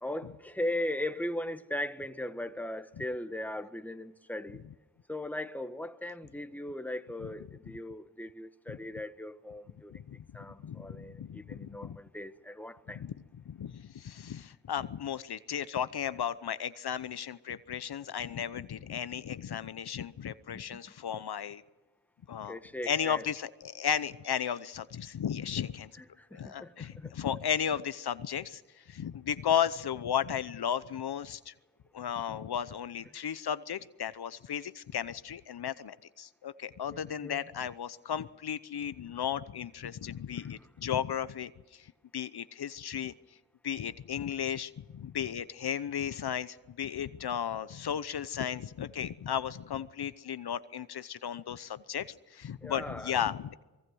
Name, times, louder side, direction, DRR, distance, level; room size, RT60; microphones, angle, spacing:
voice 1, 0.0-4.6 5.1-9.9 10.3-13.0 20.5-20.8 22.5-23.3 26.0-27.1 37.2-37.4 40.3-40.5 52.6-53.2, left 1 dB, 5° left, 1.5 m, -38 dB
voice 2, 10.6-12.0 12.9-13.1 13.5-21.6 22.3-25.9 26.3-31.5 31.9-43.1 43.6-53.5, left 8 dB, 75° left, 0.8 m, -35 dB
25.0 x 22.0 x 6.3 m
cardioid pair, 50°, 39 cm